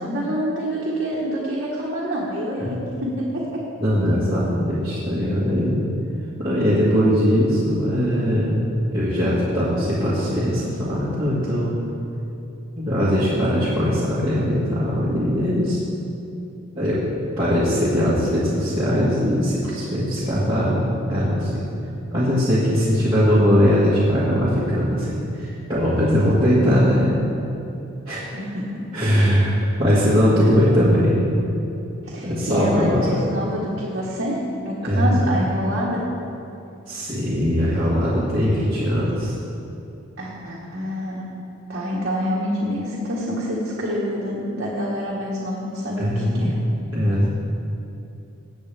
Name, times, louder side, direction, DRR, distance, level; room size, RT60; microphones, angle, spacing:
voice 1, 0.0-3.6 28.3-28.8 30.4-30.9 32.0-34.4 34.6-36.0 40.2-41.2 41.7-46.6, equal, 55° right, -6 dB, 1.5 m, -27 dB
voice 2, 3.8-5.8 6.4-8.6 8.9-11.7 12.7-15.8 16.8-17.0 17.4-20.8 21.1-21.6 22.1-27.1 28.1-28.2 28.9-29.5 29.8-31.2 32.2-33.2 34.8-35.2 36.9-39.3 46.0-46.5 46.9-47.3, equal, 25° right, -11 dB, 1.9 m, -20 dB
18.5 x 7.4 x 3.5 m, 2.8 s
head